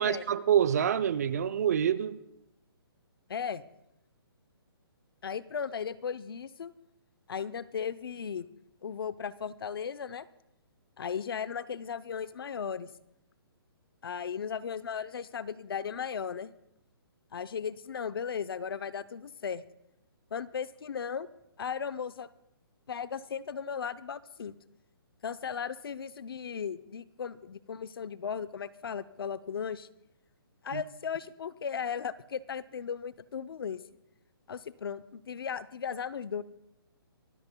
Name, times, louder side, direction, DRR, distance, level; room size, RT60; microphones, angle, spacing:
voice 1, 0.0-2.2 30.7-30.8, right 9 dB, 40° right, 13 dB, 0.6 m, -26 dB
voice 2, 3.3-3.6 5.2-6.7 7.3-8.5 8.8-10.3 11.0-12.9 14.0-16.5 17.3-19.6 20.3-21.3 21.6-22.3 22.9-24.6 25.2-29.9 30.6-33.8 34.5-36.4, left 7 dB, 70° left, 14 dB, 0.7 m, -36 dB
25.5 x 13.5 x 2.3 m, 0.83 s
hypercardioid pair, 165°, 13 cm